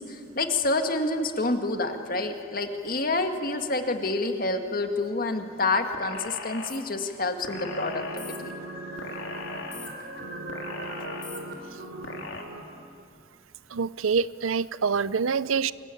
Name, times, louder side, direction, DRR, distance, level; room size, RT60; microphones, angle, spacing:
voice 1, 0.0-8.5, left 2 dB, 45° left, 6 dB, 1.9 m, -28 dB
sound 1, 5.9-6.8 7.4-8.4 9.0-9.9 10.5-11.4 12.0-12.4, left 3 dB, 70° left, 3.3 m, -38 dB
sound 2, 7.4-12.6, right 2 dB, 55° right, 3.8 m, -38 dB
voice 2, 13.7-15.7, right 5 dB, 90° right, 17 dB, 0.6 m, -26 dB
26.0 x 22.5 x 9.2 m, 2.4 s
head